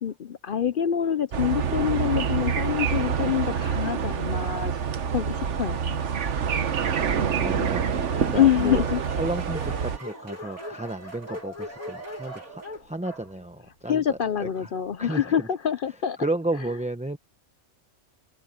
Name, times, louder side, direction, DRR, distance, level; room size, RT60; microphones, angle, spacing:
voice 1, 0.0-4.7 5.1-6.0 8.3-9.0 13.9-16.2, left 10 dB, 60° left, 0.5 m, -25 dB
sound 1, 1.3-10.0, right 7 dB, 60° right, 1.3 m, -27 dB
Dog, 3.6-6.6 7.3-7.4 7.7-7.8 8.0-14.4, left 2 dB, 85° left, 8.4 m, -43 dB
voice 2, 7.3-8.8 9.2-14.7 15.0-15.5 16.2-17.2, right 2 dB, 5° right, 0.6 m, -33 dB
sound 2, 7.7-12.9, right 1 dB, 80° right, 4.7 m, -43 dB
omnidirectional pair, 1.5 m